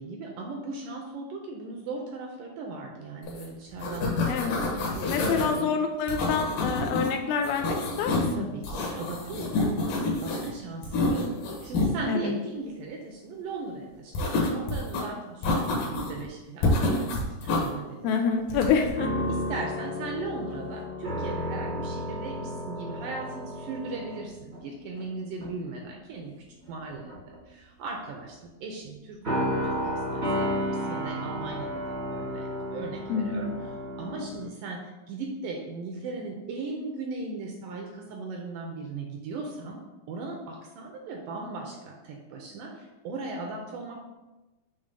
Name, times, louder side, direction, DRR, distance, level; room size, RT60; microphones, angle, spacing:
voice 1, 0.0-4.1 5.0-5.8 8.3-11.3 11.6-18.2 19.3-30.5 30.9-39.8 40.1-44.0, right 3 dB, 80° right, 1 dB, 2.0 m, -38 dB
sound 1, 3.3-3.4 3.7-5.5 6.1-7.1 7.4-8.3 8.6-10.5 10.8-11.9 14.1-15.0 15.4-16.2 16.6-17.7 18.5-18.9, left 2 dB, 70° left, 2.6 m, -28 dB
voice 2, 4.3-4.6 5.1-8.5 12.1-12.3 18.0-19.3 33.1-33.5, left 6 dB, 85° left, 4 dB, 2.4 m, -27 dB
sound 2, 19.0-25.0 25.4-25.7 26.6-27.4 29.2-34.4, equal, 45° right, 0.8 m, -32 dB
6.9 x 3.0 x 5.3 m, 1.1 s
omnidirectional pair, 4.3 m